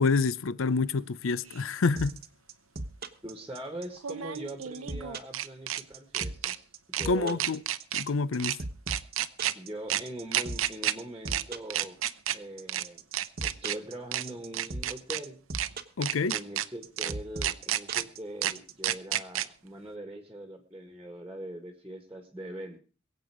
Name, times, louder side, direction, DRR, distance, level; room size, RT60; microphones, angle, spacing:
voice 1, 0.0-2.2 7.1-7.6 7.9-8.6 16.0-16.3, left 4 dB, 80° left, 0.6 m, -27 dB
sound 1, 1.5-1.6 4.0-5.8 6.1-6.6 6.9-7.1 7.4-8.0 8.4-8.6 8.9-9.5 9.9-10.0 10.3-10.9 11.3-11.4 11.7-12.4 12.7-12.8 13.1-13.8 14.1-14.2 14.5-15.2 15.5-15.7 16.0-16.7 17.0-17.1 17.4-18.0 18.4-18.5 18.8-19.5, right 11 dB, 85° right, 0.7 m, -30 dB
sound 2, 2.0-18.7, right 2 dB, 50° right, 1.1 m, -38 dB
voice 2, 3.2-6.6 6.9-7.4 9.5-12.0 12.3-13.0 13.4-15.4 16.2-22.8, right 1 dB, 10° right, 1.7 m, -42 dB
22.0 x 8.1 x 4.9 m
head